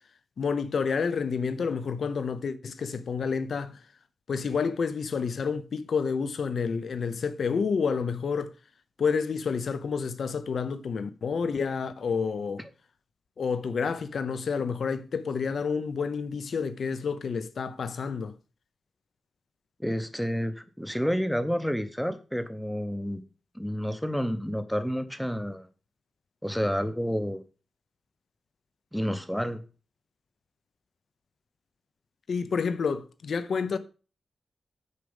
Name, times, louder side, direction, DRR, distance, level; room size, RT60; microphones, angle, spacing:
voice 1, 0.4-3.8 4.3-8.5 9.0-12.6 13.4-18.3 32.3-33.8, left 5 dB, 55° left, 0.7 m, -29 dB
voice 2, 19.8-23.2 23.5-25.7 26.4-27.4 28.9-29.6, equal, ahead, 0.7 m, -29 dB
6.6 x 5.0 x 7.0 m
wide cardioid pair, 180°, 0 cm